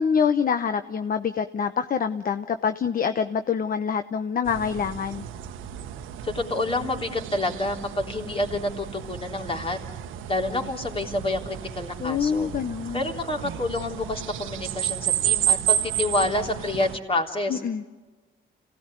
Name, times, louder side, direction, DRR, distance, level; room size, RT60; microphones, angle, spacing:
voice 1, 0.0-5.2 12.0-13.1 17.5-17.8, left 6 dB, 45° left, 10 dB, 0.9 m, -25 dB
sound 1, 4.5-17.0, right 11 dB, 90° right, 1.1 m, -31 dB
voice 2, 6.2-9.8 10.3-12.5 12.9-17.6, left 2 dB, 30° left, 2 dB, 3.5 m, -28 dB
26.5 x 17.5 x 9.7 m, 1.3 s
cardioid pair, 90°, 20 cm